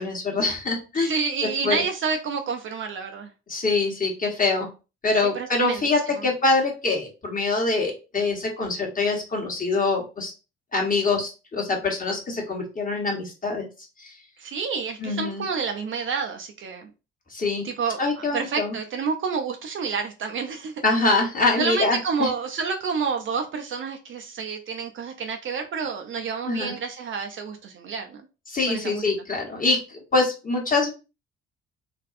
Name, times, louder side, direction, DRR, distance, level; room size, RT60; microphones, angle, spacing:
voice 1, 0.0-1.1 1.6-1.8 3.5-4.7 5.0-10.3 10.7-13.6 14.0-14.1 15.0-15.4 17.3-17.7 18.0-18.7 20.8-22.3 26.5-26.7 28.5-30.9, left 3 dB, 25° left, 1 dB, 1.1 m, -24 dB
voice 2, 1.0-3.3 5.3-6.2 14.4-16.9 17.6-20.8 21.6-28.2 28.7-29.0, right 5 dB, 40° right, 5 dB, 0.5 m, -29 dB
2.6 x 2.2 x 2.5 m, 0.31 s
hypercardioid pair, 55°, 31 cm